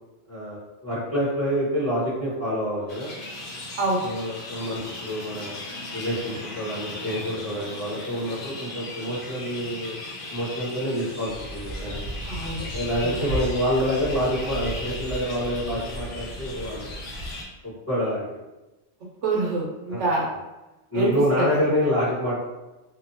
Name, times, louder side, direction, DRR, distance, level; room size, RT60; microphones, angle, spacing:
voice 1, 0.3-3.1 4.0-5.6 5.9-10.0 10.3-12.1 12.7-16.9 17.6-18.2 19.9-20.0 20.9-22.4, equal, 15° left, -11 dB, 0.9 m, -27 dB
sound 1, 2.9-17.4, left 2 dB, 55° left, 0.7 m, -38 dB
sound 2, 11.2-17.3, equal, 85° left, 1.2 m, -35 dB
voice 2, 12.3-12.7 13.0-13.1 19.2-20.3 20.9-21.6, right 2 dB, 75° right, -2 dB, 0.9 m, -25 dB
2.7 x 2.2 x 2.7 m, 1.0 s
omnidirectional pair, 1.2 m